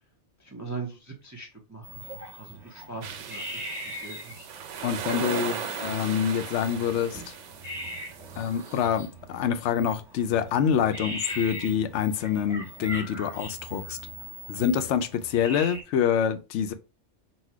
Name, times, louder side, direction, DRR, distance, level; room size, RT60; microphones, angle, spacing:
voice 1, 0.4-2.0 2.4-3.7 4.0-4.5 5.4-5.6, right 4 dB, 20° right, 0.5 m, -40 dB
sound 1, 1.8-15.8, equal, ahead, 1.3 m, -41 dB
sound 2, 3.0-8.9, right 7 dB, 80° right, 1.0 m, -37 dB
voice 2, 4.8-7.3 8.4-14.0 14.5-16.7, left 8 dB, 75° left, 0.9 m, -26 dB
4.2 x 2.2 x 4.5 m
omnidirectional pair, 1.2 m